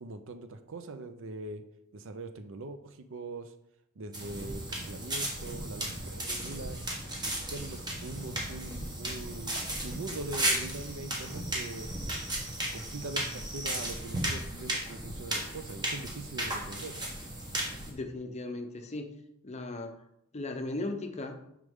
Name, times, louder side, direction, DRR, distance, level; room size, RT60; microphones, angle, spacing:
voice 1, 0.0-1.6 1.9-3.5 4.0-6.8 7.3-9.5 9.8-11.9 12.7-17.0, right 2 dB, 60° right, 9 dB, 0.5 m, -42 dB
sound 1, 4.1-17.9, right 1 dB, 20° right, 1.2 m, -35 dB
voice 2, 17.9-19.1 19.4-20.0 20.3-21.4, left 2 dB, 30° left, 6 dB, 0.6 m, -37 dB
6.6 x 5.1 x 3.6 m, 0.78 s
head